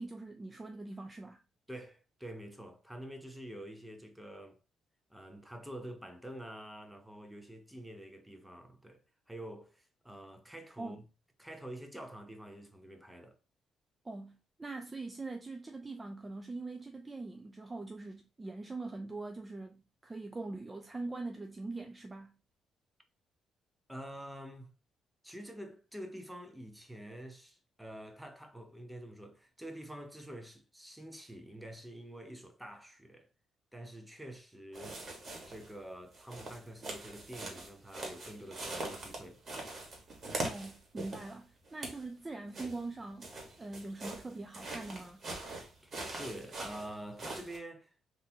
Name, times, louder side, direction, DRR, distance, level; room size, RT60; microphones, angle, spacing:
voice 1, 0.0-1.4 10.8-11.0 14.0-22.4 40.4-45.2, right 3 dB, 20° right, 0.4 m, -43 dB
voice 2, 1.7-4.6 5.1-9.0 9.3-11.0 11.4-13.4 23.9-24.7 25.2-33.3 33.7-35.0 35.5-39.8 45.8-47.9, right 1 dB, 5° right, 0.8 m, -47 dB
sound 1, 34.7-35.7 36.1-41.3 41.7-42.1 42.5-47.6, right 2 dB, 45° right, 1.4 m, -42 dB
3.7 x 2.6 x 2.8 m
cardioid pair, 90°, 0 cm